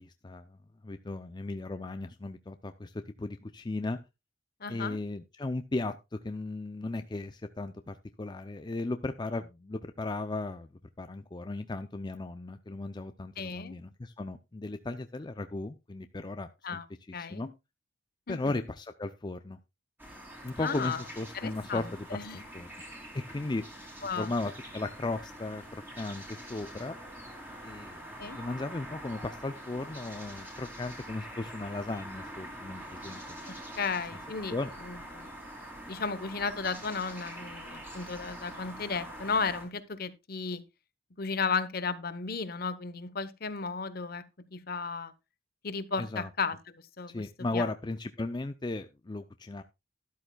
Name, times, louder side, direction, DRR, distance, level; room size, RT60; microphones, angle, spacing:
voice 1, 0.0-4.0 4.7-10.7 11.0-16.8 17.1-17.5 18.3-19.6 20.4-22.7 23.1-23.6 24.2-27.0 27.6-33.2 34.5-34.7 46.0-46.3 47.1-49.6, left 2 dB, 25° left, 0.4 m, -36 dB
voice 2, 4.6-5.0 13.4-13.8 16.6-16.8 17.1-17.5 18.3-18.6 20.6-21.0 21.3-22.4 24.0-24.3 28.2-28.4 33.5-34.5 34.8-35.3 35.9-40.6 41.2-44.2 44.5-45.1 45.6-47.2 47.5-47.7, left 5 dB, 50° left, 0.9 m, -34 dB
sound 1, 20.0-39.7, right 1 dB, 10° right, 2.9 m, -45 dB
12.5 x 11.5 x 2.3 m
head